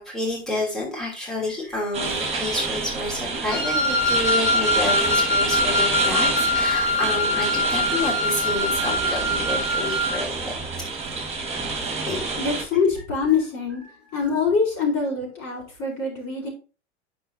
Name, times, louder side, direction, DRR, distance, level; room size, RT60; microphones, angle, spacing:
voice 1, 0.0-10.3 12.1-12.2, left 1 dB, ahead, -3 dB, 3.2 m, -29 dB
sound 1, 1.9-12.6, right 4 dB, 20° right, 2.1 m, -28 dB
Wind instrument woodwind instrument, 3.5-10.2, left 2 dB, 75° left, 3.4 m, -23 dB
voice 2, 12.4-13.8 14.1-16.5, left 5 dB, 40° left, -1 dB, 4.2 m, -24 dB
8.9 x 6.1 x 2.8 m, 0.33 s
figure-of-eight pair, 85°, 34 cm